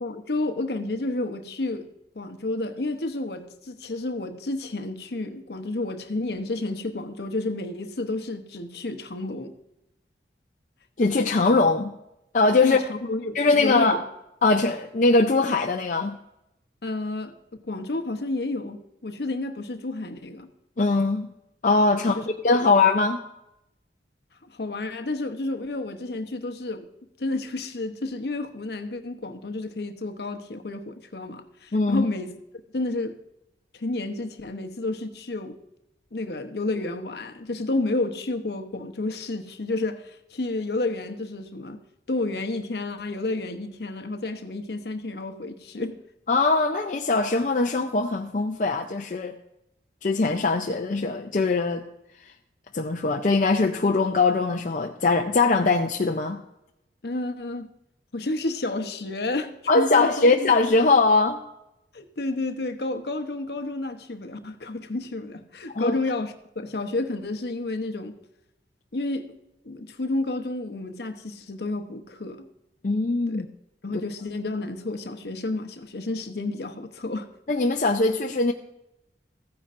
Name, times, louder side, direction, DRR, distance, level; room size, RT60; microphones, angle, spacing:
voice 1, 0.0-1.9 2.1-9.5 12.6-14.0 16.8-17.3 17.6-20.5 22.0-22.3 22.6-22.7 24.4-26.9 27.2-32.3 32.7-33.2 33.7-35.6 36.1-41.8 42.1-46.0 57.0-57.7 58.1-60.6 61.9-68.2 68.9-69.3 69.6-72.4 73.3-73.4 73.8-77.3, left 2 dB, 65° left, 0.8 m, -30 dB
voice 2, 11.0-11.9 12.3-12.8 13.3-14.0 14.4-16.2 20.8-21.3 21.6-23.2 31.7-32.0 46.3-49.4 50.0-51.8 52.7-56.4 59.7-61.4 65.7-66.0 72.8-73.5 77.5-78.5, left 3 dB, 45° left, 0.5 m, -21 dB
14.5 x 9.6 x 2.5 m
head